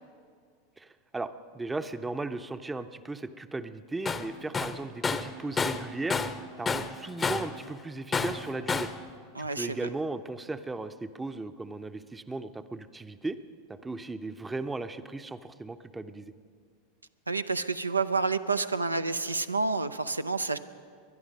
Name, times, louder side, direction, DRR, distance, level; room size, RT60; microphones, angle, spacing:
voice 1, 1.1-6.2 6.6-8.9 9.4-13.4 13.7-16.3, right 3 dB, 10° right, 11 dB, 0.6 m, -36 dB
Tools, 4.1-4.3 4.5-6.4 6.7-7.6 8.1-9.0, left 4 dB, 20° left, 0.7 m, -30 dB
voice 2, 9.3-9.8 17.3-20.6, right 4 dB, 85° right, 10 dB, 0.4 m, -29 dB
20.5 x 11.5 x 5.3 m, 2.1 s
figure-of-eight pair, 85°, 0 cm